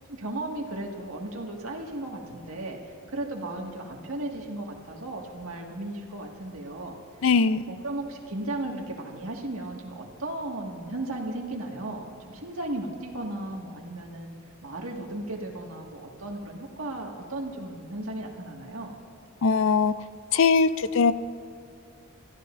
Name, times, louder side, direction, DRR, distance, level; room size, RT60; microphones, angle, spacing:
voice 1, 0.1-2.8 3.1-6.9 7.7-14.3 14.6-18.9, right 1 dB, 80° right, 0 dB, 1.9 m, -35 dB
voice 2, 7.2-7.6 19.4-20.0 20.3-21.1, left 5 dB, 60° left, 14 dB, 0.5 m, -21 dB
28.0 x 14.0 x 2.6 m, 2.6 s
head